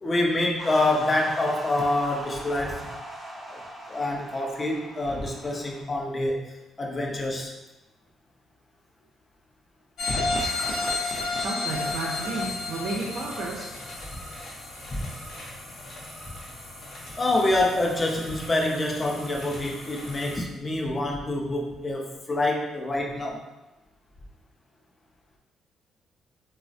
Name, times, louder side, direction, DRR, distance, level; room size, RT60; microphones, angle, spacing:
voice 1, 0.0-2.8 3.5-3.6 3.9-6.5 6.8-7.5 10.2-10.4 14.9-15.1 17.2-23.4, left 2 dB, 30° left, 0 dB, 0.5 m, -26 dB
sound 1, 0.6-5.8, equal, 20° right, 0.6 m, -40 dB
sound 2, 10.0-14.7 15.2-15.3, left 3 dB, 85° left, 0.5 m, -30 dB
voice 2, 11.4-13.7, right 3 dB, 70° right, -3 dB, 0.5 m, -32 dB
sound 3, 11.6-20.4, left 1 dB, 55° left, 0.9 m, -42 dB
3.1 x 2.0 x 2.6 m, 1.0 s
cardioid pair, 90°, 0 cm